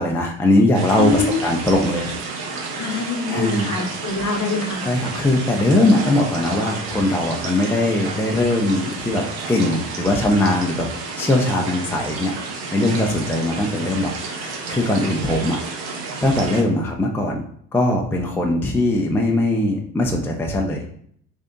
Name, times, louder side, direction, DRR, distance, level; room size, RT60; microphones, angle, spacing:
voice 1, 0.0-2.1 3.3-3.7 4.8-10.9 11.2-12.3 12.7-15.8 16.2-17.5 17.7-20.9, left 1 dB, 5° left, 0 dB, 0.5 m, -20 dB
sound 1, 0.7-16.6, right 4 dB, 60° right, 1.0 m, -31 dB
voice 2, 1.0-1.4 2.8-4.8, left 4 dB, 40° left, 4 dB, 0.9 m, -24 dB
3.3 x 2.6 x 3.9 m, 0.63 s
hypercardioid pair, 75°, 42 cm